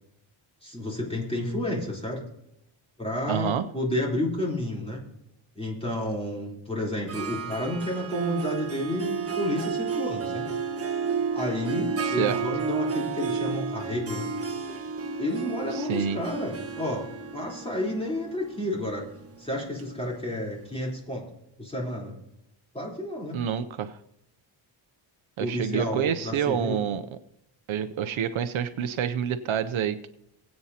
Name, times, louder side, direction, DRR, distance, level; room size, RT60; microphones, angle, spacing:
voice 1, 0.6-2.2 3.0-5.0 5.6-10.5 11.3-14.3 15.2-17.1 17.3-19.1 19.4-21.2 21.6-22.2 22.7-23.4 25.4-26.8, left 1 dB, 10° left, -3 dB, 3.7 m, -31 dB
voice 2, 3.3-3.6 12.0-12.4 15.7-16.2 23.3-24.0 25.4-27.0 27.7-30.1, right 8 dB, 70° right, 10 dB, 0.7 m, -28 dB
Harp, 7.1-20.6, right 5 dB, 30° right, 1.2 m, -32 dB
20.5 x 8.8 x 2.8 m, 0.83 s
cardioid pair, 105°, 49 cm